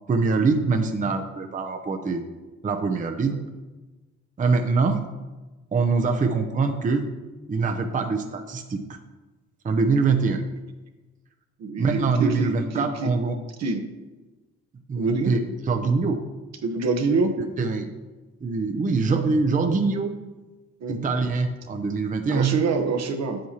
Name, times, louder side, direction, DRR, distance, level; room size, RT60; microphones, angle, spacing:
voice 1, 0.1-2.2 2.6-3.4 4.4-5.0 5.7-7.1 7.5-9.0 9.6-10.4 11.8-13.4 14.9-15.4 15.7-16.2 17.4-17.9 18.4-20.2 20.9-22.6, right 4 dB, 25° right, 5 dB, 0.6 m, -24 dB
voice 2, 11.6-13.1 13.6-13.8 15.0-15.3 16.6-17.3 20.8-21.1 22.3-23.4, right 4 dB, 60° right, 5 dB, 1.0 m, -26 dB
8.1 x 7.6 x 2.9 m, 1.2 s
cardioid pair, 90°, 30 cm